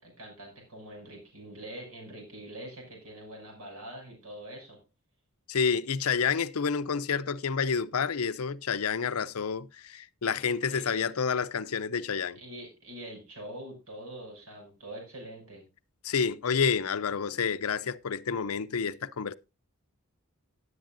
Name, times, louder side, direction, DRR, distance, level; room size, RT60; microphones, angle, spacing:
voice 1, 0.0-4.8 10.7-11.0 12.3-15.7, right 1 dB, 80° right, 6.5 m, -44 dB
voice 2, 5.5-12.4 16.0-19.3, left 6 dB, 80° left, 0.6 m, -29 dB
17.5 x 8.1 x 2.6 m
head